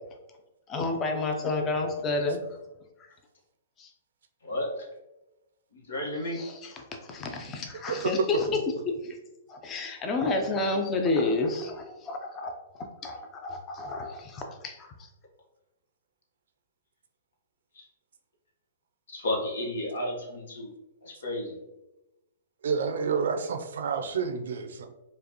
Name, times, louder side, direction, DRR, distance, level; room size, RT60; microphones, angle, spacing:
voice 1, 0.7-2.4 3.8-3.9 6.3-6.5 7.1-8.6 8.9-9.2 9.5-12.5 13.0-14.9, left 3 dB, 25° left, 3 dB, 0.6 m, -30 dB
voice 2, 4.4-4.8 5.7-6.4 17.7-17.8 19.1-20.7 21.0-21.6, left 1 dB, 80° left, -1 dB, 1.2 m, -32 dB
voice 3, 22.6-24.9, right 6 dB, 75° right, 6 dB, 0.5 m, -29 dB
4.8 x 2.4 x 2.9 m, 0.97 s
hypercardioid pair, 130°, 0 cm